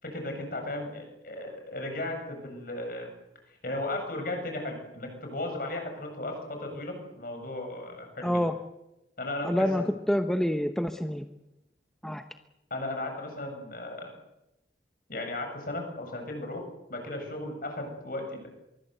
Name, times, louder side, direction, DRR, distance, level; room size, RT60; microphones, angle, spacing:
voice 1, 0.0-3.1 3.6-8.4 9.2-9.9 12.7-14.1 15.1-16.6 16.9-18.5, left 2 dB, 50° left, 4 dB, 7.7 m, -35 dB
voice 2, 8.2-8.5 9.4-11.2 12.0-12.2, equal, 5° left, 6 dB, 0.9 m, -27 dB
25.0 x 22.5 x 8.0 m, 0.93 s
head